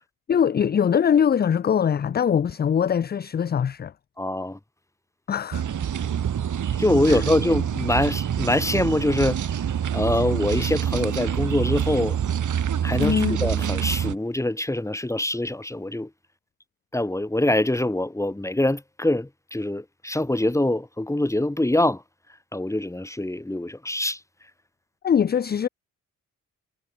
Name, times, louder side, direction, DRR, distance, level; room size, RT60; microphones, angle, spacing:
voice 1, 0.3-3.9 5.3-5.6 7.1-7.2 13.0-13.4 25.0-25.7, left 8 dB, 30° left, 0.4 m, -22 dB
voice 2, 4.2-4.6 6.8-9.4 9.9-12.2 12.8-16.1 16.9-22.0 22.5-24.2, left 1 dB, 10° left, 1.4 m, -24 dB
sound 1, 5.5-14.2, right 9 dB, 55° right, 1.2 m, -26 dB
supercardioid pair, 45°, 36 cm